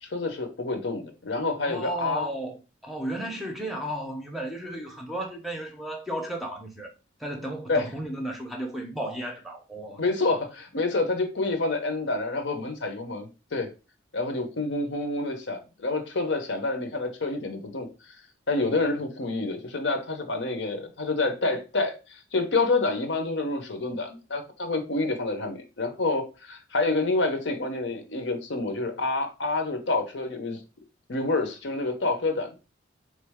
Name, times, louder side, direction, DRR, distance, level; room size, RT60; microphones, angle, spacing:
voice 1, 0.0-2.3 7.7-7.8 10.0-13.7 14.1-18.2 18.5-30.6 31.1-32.6, left 3 dB, 65° left, 0.7 m, -28 dB
voice 2, 1.6-6.9 7.2-10.0, right 1 dB, ahead, 0.6 m, -34 dB
3.9 x 3.1 x 3.4 m
head